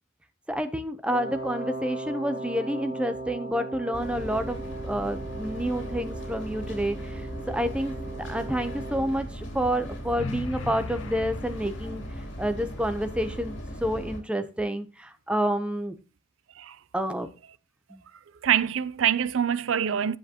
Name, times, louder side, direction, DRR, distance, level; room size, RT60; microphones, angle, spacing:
voice 1, 0.5-4.6 4.8-7.2 7.5-12.0 12.4-13.5 13.8-15.9 16.9-17.3 17.9-18.0, equal, 5° right, 0.7 m, -29 dB
Wind instrument woodwind instrument, 1.1-9.1, right 2 dB, 30° right, 2.0 m, -38 dB
sound 1, 3.9-14.2, equal, 60° left, 3.3 m, -38 dB
sound 2, 10.2-12.2, left 3 dB, 85° left, 0.7 m, -38 dB
voice 2, 18.4-20.2, right 9 dB, 75° right, 0.4 m, -25 dB
10.0 x 7.7 x 2.9 m
head